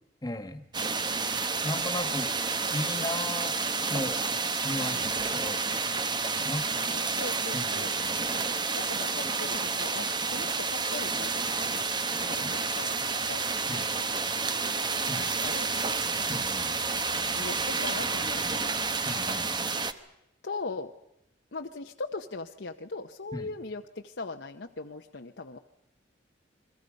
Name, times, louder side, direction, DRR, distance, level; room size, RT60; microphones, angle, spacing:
voice 1, 0.2-0.7 1.6-2.4 2.7-3.6 3.9-4.2 4.6-5.9 6.4-6.7 7.5-8.2 12.4-12.6 13.7-13.9 15.1-15.3 16.3-16.7 19.0-19.5 23.3-23.5, left 1 dB, 20° left, 9 dB, 1.7 m, -36 dB
sound 1, 0.7-19.9, right 4 dB, 25° right, 1.0 m, -30 dB
voice 2, 6.9-7.9 8.7-11.9 12.2-13.6 13.9-14.9 15.4-16.0 16.9-18.7 20.4-21.0 21.5-25.6, left 3 dB, 70° left, 3 dB, 0.9 m, -40 dB
30.0 x 22.0 x 5.3 m, 0.84 s
head